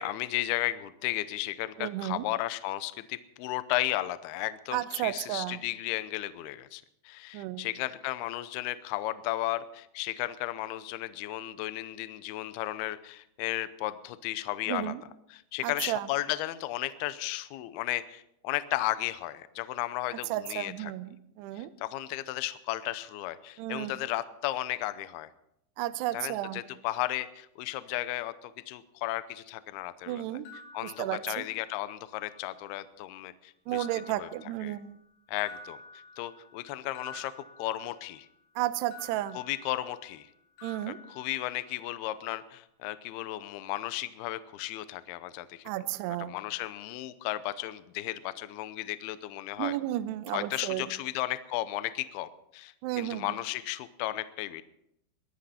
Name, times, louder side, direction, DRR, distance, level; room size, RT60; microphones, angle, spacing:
voice 1, 0.0-15.0 15.3-20.9 21.6-25.3 26.1-30.2 30.7-34.3 34.6-34.8 35.3-35.8 36.2-37.3 37.6-38.3 39.3-40.3 40.9-45.6 46.2-49.8 50.3-54.6, left 15 dB, 85° left, 13 dB, 2.2 m, -34 dB
voice 2, 1.8-2.2 4.7-5.6 7.3-7.6 14.7-15.0 15.6-16.1 20.3-21.1 21.4-21.7 23.6-23.9 25.8-26.6 30.1-30.5 30.8-31.5 33.7-34.9 38.6-39.4 40.6-41.0 45.7-46.3 49.6-50.9 52.8-53.2, right 14 dB, 85° right, 12 dB, 2.4 m, -32 dB
sound 1, 30.4-31.7 32.1-32.9 33.7-35.0 35.4-38.3 38.9-40.3 40.6-41.9, left 3 dB, 70° left, 6.2 m, -51 dB
21.5 x 11.5 x 4.3 m, 0.77 s
omnidirectional pair, 5.5 m